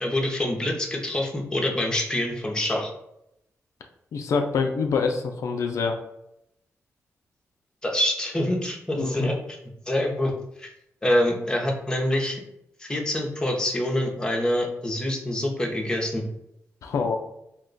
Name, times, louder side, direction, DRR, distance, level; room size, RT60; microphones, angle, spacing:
voice 1, 0.0-2.9 7.8-9.4 9.9-10.3 10.6-10.7 11.0-12.4 12.8-16.2, left 1 dB, 15° left, 0 dB, 0.6 m, -25 dB
voice 2, 4.1-6.0 9.0-9.3 16.8-17.2, left 5 dB, 70° left, 4 dB, 0.3 m, -25 dB
2.8 x 2.1 x 3.8 m, 0.81 s
wide cardioid pair, 115°, 5 cm